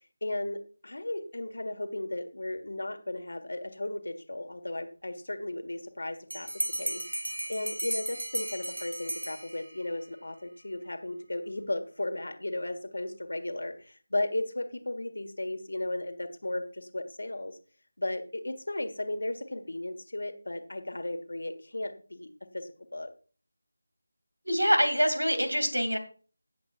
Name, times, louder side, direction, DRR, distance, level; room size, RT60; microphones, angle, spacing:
voice 1, 0.2-6.5 6.8-7.0 7.5-17.6 18.0-23.1, left 1 dB, 60° left, 8 dB, 1.6 m, -35 dB
Bell, 6.3-9.9, right 1 dB, 70° right, 0.9 m, -35 dB
voice 2, 24.4-26.0, equal, 85° right, 8 dB, 2.6 m, -25 dB
16.5 x 7.8 x 2.5 m, 0.38 s
figure-of-eight pair, 165°, 0 cm